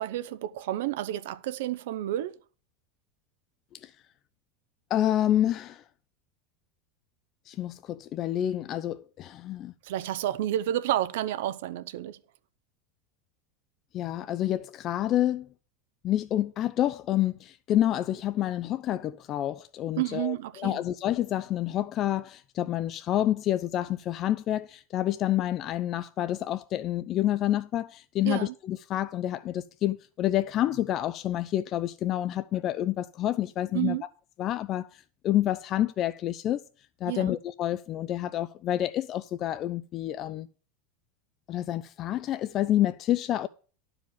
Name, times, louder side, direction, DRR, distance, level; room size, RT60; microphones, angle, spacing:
voice 1, 0.0-2.3 9.8-12.2 20.0-20.8 28.2-28.5 33.7-34.0 37.1-37.4, right 13 dB, 70° right, 0.7 m, -30 dB
voice 2, 4.9-5.8 7.5-9.7 13.9-15.5 16.0-34.0 34.4-36.6 37.0-40.5 41.5-43.5, left 12 dB, 45° left, 0.4 m, -28 dB
11.5 x 4.9 x 7.1 m
hypercardioid pair, 90°, 0 cm